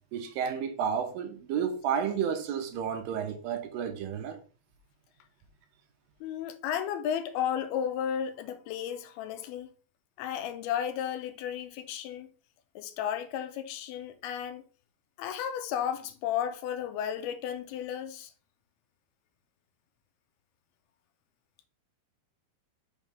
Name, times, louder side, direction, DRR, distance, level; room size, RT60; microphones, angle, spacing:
voice 1, 0.1-4.4, right 7 dB, 75° right, 2.5 m, -31 dB
voice 2, 6.2-9.7 10.2-12.3 12.8-14.6 15.2-18.3, left 9 dB, 85° left, 2.7 m, -33 dB
6.4 x 3.1 x 5.3 m
omnidirectional pair, 4.4 m